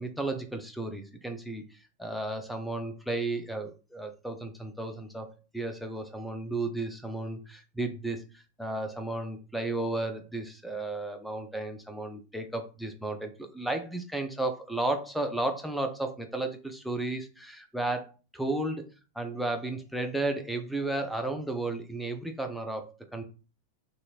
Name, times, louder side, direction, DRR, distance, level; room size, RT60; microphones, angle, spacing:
voice 1, 0.0-18.9 19.2-23.2, right 2 dB, ahead, 6 dB, 0.5 m, -33 dB
2.9 x 2.6 x 2.4 m, 0.33 s
figure-of-eight pair, 90°, 0 cm